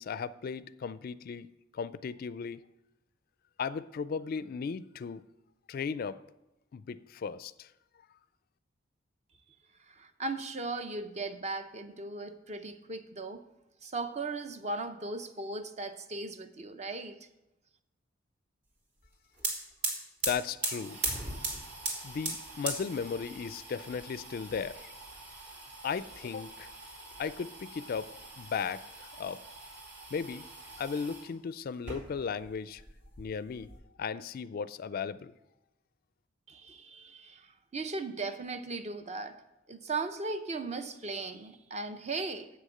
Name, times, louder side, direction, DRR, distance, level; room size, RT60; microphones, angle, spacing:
voice 1, 0.0-1.5 1.7-2.6 3.6-5.2 5.7-6.2 6.7-7.7 20.2-21.0 22.0-24.9 25.8-29.4 30.1-30.5 30.8-32.8 33.2-35.3, left 6 dB, 50° left, 16 dB, 0.3 m, -36 dB
voice 2, 9.9-13.4 13.8-17.2 36.5-39.4 39.7-42.5, right 3 dB, 35° right, 9 dB, 0.7 m, -37 dB
sound 1, 19.0-19.1 19.3-31.3 31.7-32.5 32.8-33.8, right 2 dB, 65° right, 3.0 m, -40 dB
7.9 x 6.4 x 7.6 m, 0.93 s
head